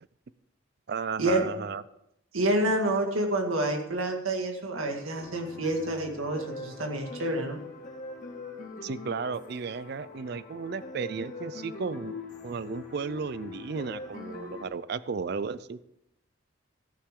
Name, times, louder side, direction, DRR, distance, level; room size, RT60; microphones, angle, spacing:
voice 1, 0.9-1.8 8.8-15.8, right 5 dB, 50° right, 16 dB, 0.4 m, -34 dB
voice 2, 2.3-7.6, right 1 dB, 85° right, 3 dB, 1.9 m, -28 dB
sound 1, 5.2-14.6, left 3 dB, 35° left, 1.8 m, -42 dB
14.0 x 9.9 x 3.7 m, 0.81 s
head